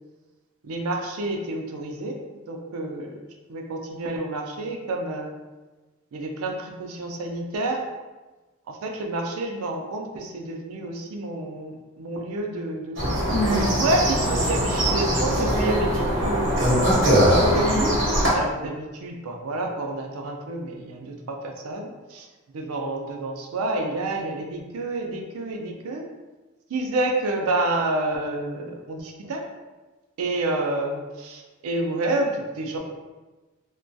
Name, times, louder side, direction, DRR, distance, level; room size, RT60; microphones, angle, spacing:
voice 1, 0.6-2.2 2.5-3.2 3.5-5.3 6.1-7.8 8.7-13.0 13.7-16.8 17.3-18.0 18.3-22.3 22.5-26.1 26.7-29.5 30.2-32.8, right 2 dB, 85° right, 2 dB, 0.4 m, -29 dB
sound 1, 13.0-18.3, equal, 60° right, 0.8 m, -21 dB
2.2 x 2.2 x 2.5 m, 1.2 s
head